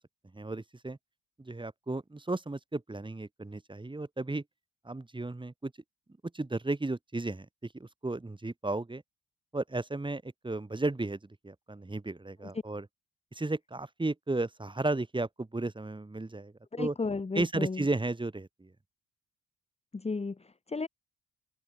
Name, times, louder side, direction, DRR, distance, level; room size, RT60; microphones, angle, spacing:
voice 1, 0.3-1.0 1.4-4.4 4.8-5.7 6.3-7.5 7.7-9.0 9.5-12.9 13.3-16.9 17.3-18.7, right 2 dB, 15° right, 5.5 m, -34 dB
voice 2, 16.7-17.8 19.9-20.9, left 4 dB, 20° left, 1.7 m, -34 dB
cardioid pair, 90°, 30 cm